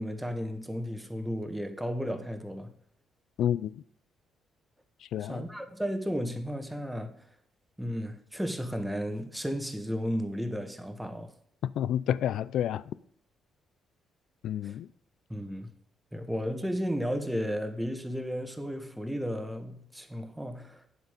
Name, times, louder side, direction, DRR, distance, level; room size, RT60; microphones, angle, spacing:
voice 1, 0.0-2.7 5.2-7.2 7.8-11.3 14.6-14.7 15.3-15.7 16.1-20.8, equal, 5° right, 1.6 m, -34 dB
voice 2, 3.4-3.8 5.1-5.4 11.6-12.8 14.4-14.9, left 10 dB, 75° left, 0.4 m, -29 dB
9.7 x 7.8 x 5.2 m
cardioid pair, 90°, 0 cm